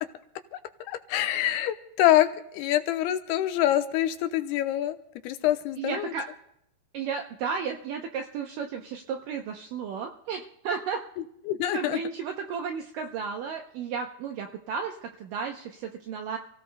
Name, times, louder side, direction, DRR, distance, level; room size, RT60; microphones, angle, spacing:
voice 1, 0.9-2.3 2.5-5.0 5.2-6.1 11.5-12.0, left 13 dB, 80° left, 8 dB, 2.6 m, -25 dB
voice 2, 5.8-6.3 6.9-11.0 11.7-16.4, right 6 dB, 80° right, 4 dB, 1.9 m, -33 dB
29.5 x 16.5 x 2.2 m, 0.75 s
omnidirectional pair, 4.7 m